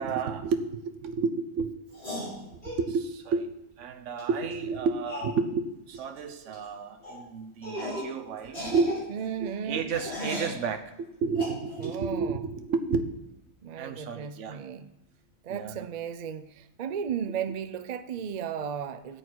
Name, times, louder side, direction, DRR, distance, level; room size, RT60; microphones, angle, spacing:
voice 1, 0.0-1.7 2.7-3.5 3.8-8.9 9.4-13.1 13.7-14.6 15.5-15.9, right 5 dB, 55° right, 8 dB, 1.2 m, -31 dB
sound 1, 1.9-2.8 4.2-4.3 4.5-4.6 5.1-5.3 5.9-6.2 6.4-6.6 7.0-7.2 7.6-8.1 8.4-10.6 11.3-11.9, left 1 dB, 25° left, 5.7 m, -36 dB
voice 2, 9.1-9.9 11.8-12.5 13.6-14.9 15.4-19.2, right 8 dB, 75° right, 12 dB, 0.3 m, -35 dB
13.0 x 8.4 x 4.7 m, 0.85 s
omnidirectional pair, 1.6 m